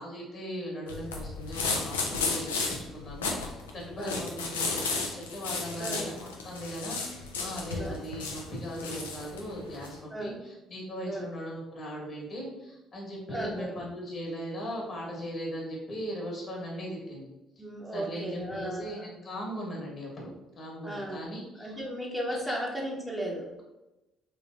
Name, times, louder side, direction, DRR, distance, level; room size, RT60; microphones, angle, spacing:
voice 1, 0.0-2.6 2.9-17.3 17.9-21.8 22.3-22.6, equal, 45° left, -2 dB, 1.2 m, -39 dB
sound 1, 0.9-10.0, left 4 dB, 85° left, 0.4 m, -34 dB
voice 2, 5.8-6.1 7.8-7.9 10.1-10.4 11.1-11.3 13.3-13.8 17.6-19.0 20.8-21.3 21.6-23.5, right 1 dB, 10° right, -2 dB, 0.8 m, -35 dB
3.3 x 3.2 x 2.5 m, 0.98 s
hypercardioid pair, 50°, 0 cm